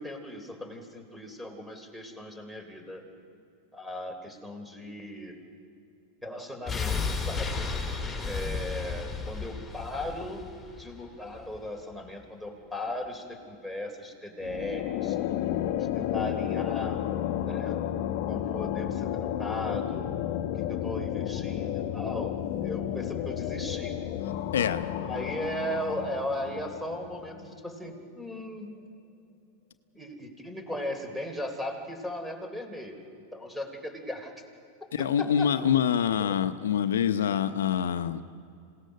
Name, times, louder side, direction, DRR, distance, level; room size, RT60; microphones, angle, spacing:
voice 1, 0.0-3.0 3.7-5.4 6.2-7.7 8.3-10.5 10.8-15.2 15.8-17.0 17.4-17.8 18.3-20.1 20.5-23.9 25.1-28.8 29.9-34.3 35.0-35.5 36.2-36.4, left 1 dB, ahead, 4 dB, 3.4 m, -37 dB
sound 1, 6.7-11.6 11.9-12.0, left 4 dB, 15° left, 3.7 m, -33 dB
sound 2, 14.4-27.5, left 11 dB, 60° left, 1.0 m, -32 dB
voice 2, 24.5-24.9 34.9-38.2, left 8 dB, 90° left, 11 dB, 0.8 m, -25 dB
27.0 x 18.0 x 6.6 m, 2.5 s
hypercardioid pair, 125°, 0 cm